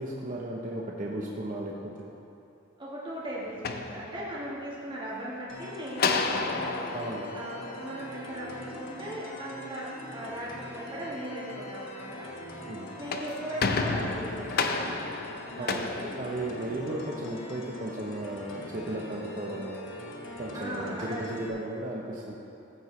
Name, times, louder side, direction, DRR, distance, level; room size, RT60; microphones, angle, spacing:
voice 1, 0.0-2.1 6.9-7.3 12.7-12.9 15.6-15.8 16.2-19.8 20.4-22.3, right 1 dB, 40° right, -2 dB, 0.8 m, -35 dB
voice 2, 2.8-12.3 12.9-14.9 15.5-16.3 20.5-21.3, right 1 dB, 25° right, -6 dB, 1.5 m, -38 dB
sound 1, 3.5-4.7 6.0-8.4 12.8-16.9, left 4 dB, 50° left, 0.5 m, -32 dB
sound 2, 5.5-21.5, left 1 dB, 70° left, 1.3 m, -43 dB
14.5 x 7.7 x 3.2 m, 2.8 s
head